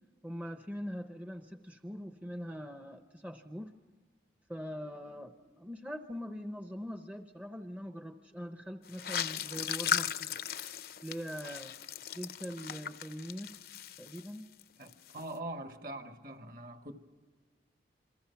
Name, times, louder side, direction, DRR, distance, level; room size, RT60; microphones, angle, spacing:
voice 1, 0.2-3.8 4.5-10.4 11.0-11.7 12.1-13.6 14.0-14.5, equal, 10° right, 0.7 m, -42 dB
sound 1, 8.9-14.6 14.9-15.3, left 8 dB, 55° left, 0.6 m, -37 dB
voice 2, 14.8-16.9, right 1 dB, 50° right, 1.7 m, -43 dB
28.5 x 22.5 x 5.8 m
head